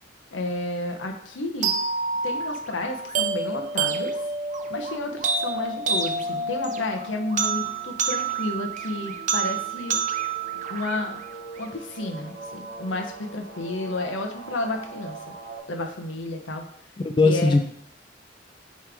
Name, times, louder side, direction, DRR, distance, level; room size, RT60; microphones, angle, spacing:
voice 1, 0.3-1.7 2.2-4.2 4.7-10.0 10.7-11.2 11.6-15.3 15.7-16.6 17.2-17.6, left 2 dB, 85° left, 4 dB, 0.9 m, -31 dB
sound 1, 1.6-11.6, right 5 dB, 40° right, 0.5 m, -28 dB
sound 2, 5.3-15.6, right 3 dB, 60° right, 1.7 m, -44 dB
voice 2, 17.0-17.6, left 3 dB, 25° left, 6 dB, 0.3 m, -19 dB
8.5 x 3.2 x 3.4 m, 0.65 s
head